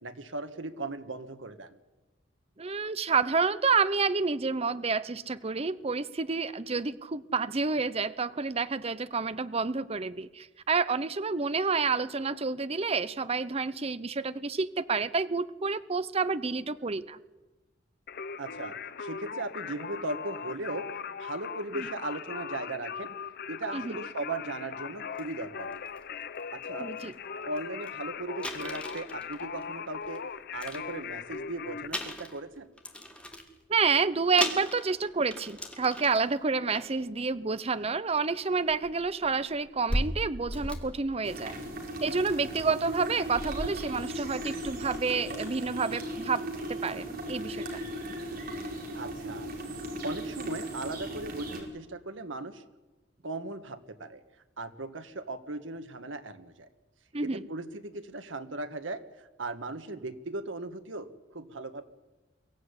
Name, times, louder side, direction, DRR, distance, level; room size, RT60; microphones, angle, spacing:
voice 1, 0.0-1.8 18.4-20.9 21.2-23.1 23.5-25.8 26.5-26.9 27.4-30.2 30.5-32.7 48.9-49.5 50.0-52.6 53.2-54.2 54.6-56.7 57.2-61.8, right 2 dB, 90° right, 9 dB, 1.6 m, -38 dB
voice 2, 2.6-17.2 21.7-21.9 23.7-24.0 26.8-27.1 33.7-41.6 42.0-47.7 57.1-57.4, right 4 dB, 35° right, 15 dB, 0.7 m, -29 dB
Singing, 18.1-31.9, left 6 dB, 55° left, 0.8 m, -39 dB
sound 1, 25.2-25.3 25.7-26.0 26.7-26.8 27.0-27.1 27.6-27.7 27.8-27.9 28.4-30.2 30.5-31.4 31.9-33.6 34.1-34.2 34.4-36.4 36.7-37.0 38.1-38.2 38.7-41.7, equal, 5° left, 2.4 m, -36 dB
sound 2, 41.2-51.6, right 1 dB, 55° right, 4.8 m, -37 dB
23.0 x 15.0 x 9.7 m, 1.1 s
head